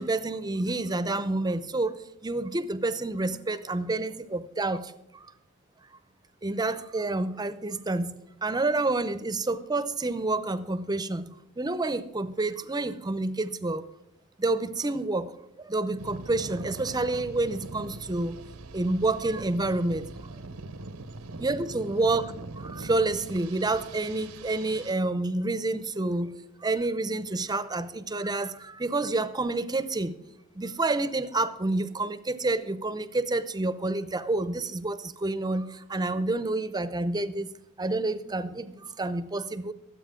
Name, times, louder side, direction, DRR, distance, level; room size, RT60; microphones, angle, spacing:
voice 1, 0.0-5.3 6.4-13.9 14.4-15.3 15.6-18.4 18.7-20.1 21.4-30.2 30.5-37.5 37.8-39.7, right 2 dB, 20° right, 13 dB, 0.6 m, -29 dB
sound 1, 16.0-24.9, right 2 dB, 85° right, 1.0 m, -42 dB
23.0 x 8.2 x 3.7 m, 0.90 s
head